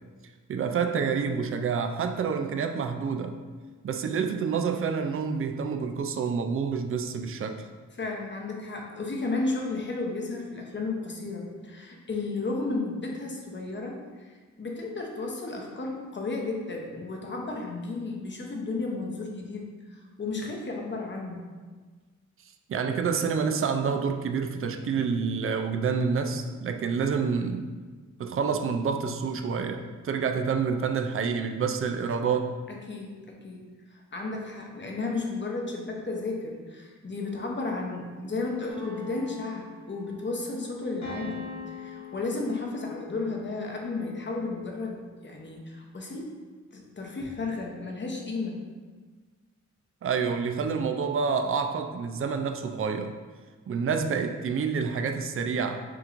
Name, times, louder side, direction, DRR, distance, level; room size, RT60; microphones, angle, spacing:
voice 1, 0.5-3.4 3.8-7.7 22.7-27.7 28.2-32.6 50.0-53.1 53.7-55.8, right 5 dB, 45° right, 5 dB, 0.4 m, -28 dB
voice 2, 8.0-21.4 30.2-30.3 32.7-46.3 46.7-48.6, left 3 dB, 35° left, 0 dB, 0.8 m, -33 dB
sound 1, 38.7-40.3 41.0-43.0, left 4 dB, 70° left, 1.2 m, -41 dB
Wind instrument woodwind instrument, 40.7-44.9, left 14 dB, 85° left, 0.5 m, -49 dB
5.9 x 3.0 x 2.5 m, 1.4 s
wide cardioid pair, 90°, 30 cm